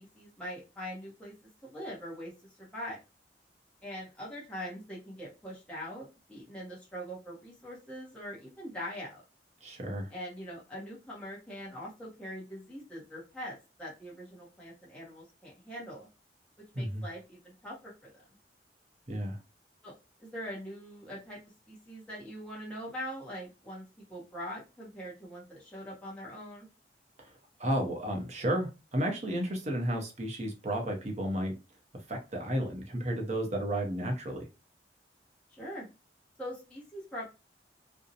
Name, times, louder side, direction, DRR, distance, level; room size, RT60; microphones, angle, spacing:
voice 1, 0.0-1.3 1.6-2.3 2.6-3.0 3.8-9.2 10.1-16.1 16.7-18.2 19.8-19.9 20.2-21.4 21.7-26.7 35.5-35.9 36.4-37.3, equal, 5° left, 0.7 m, -42 dB
voice 2, 9.6-10.1 16.7-17.0 19.1-19.4 27.2-31.5 32.1-34.5, right 1 dB, 40° right, 0.6 m, -32 dB
2.5 x 2.0 x 2.6 m
head